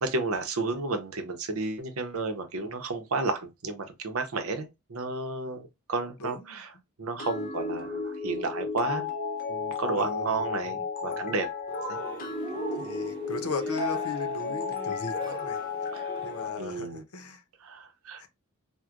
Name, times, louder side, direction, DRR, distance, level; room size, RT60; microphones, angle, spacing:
voice 1, 0.0-6.7 7.0-9.1 9.5-11.5 11.9-12.0 15.9-16.1 16.6-17.0 17.6-18.2, right 3 dB, 70° right, 0.7 m, -32 dB
voice 2, 6.2-6.6 9.7-10.5 11.0-11.3 12.7-15.6 16.2-17.4 18.2-18.3, left 4 dB, 80° left, 0.7 m, -37 dB
sound 1, 7.2-16.6, left 5 dB, 40° left, 0.8 m, -33 dB
Cheering, 11.7-16.6, right 3 dB, 20° right, 0.7 m, -40 dB
4.5 x 2.1 x 2.4 m
head